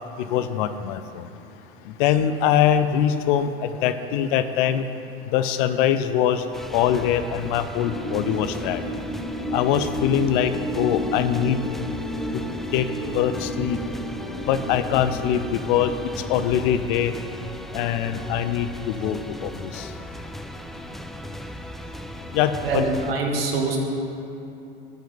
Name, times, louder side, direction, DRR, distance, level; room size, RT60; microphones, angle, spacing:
voice 1, 0.2-1.3 1.9-4.9 5.3-6.4 6.7-8.8 9.5-11.6 12.3-12.4 12.7-12.9 13.1-13.8 14.5-17.1 17.7-19.9 22.3-22.8, left 9 dB, 60° left, 11 dB, 0.7 m, -23 dB
sound 1, 6.5-23.1, equal, ahead, 0.5 m, -37 dB
sound 2, 7.8-17.3, equal, 30° left, 1.5 m, -32 dB
voice 2, 22.6-23.8, right 3 dB, 80° right, 1 dB, 1.8 m, -24 dB
13.0 x 5.8 x 5.7 m, 2.9 s
hypercardioid pair, 80°, 29 cm